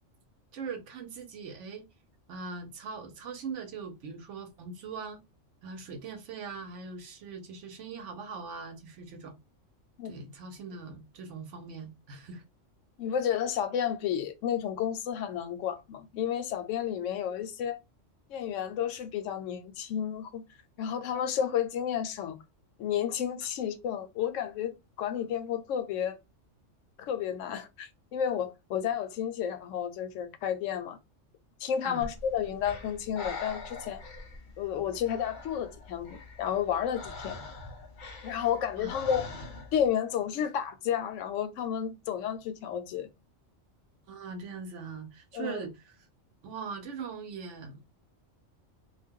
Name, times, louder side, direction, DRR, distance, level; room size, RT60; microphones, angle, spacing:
voice 1, 0.5-1.9 2.3-5.2 5.6-9.3 10.0-12.4 31.8-32.1 38.8-38.9 44.1-45.9 46.4-47.8, right 5 dB, 70° right, 1.0 m, -41 dB
voice 2, 13.0-17.8 18.3-20.4 20.8-22.4 22.8-26.2 27.0-31.0 31.6-34.0 34.6-37.4 38.2-39.3 39.7-43.1 45.3-45.6, left 9 dB, 80° left, 0.9 m, -31 dB
Breathing, 32.0-39.9, left 3 dB, 45° left, 0.7 m, -44 dB
2.4 x 2.2 x 3.5 m
omnidirectional pair, 1.3 m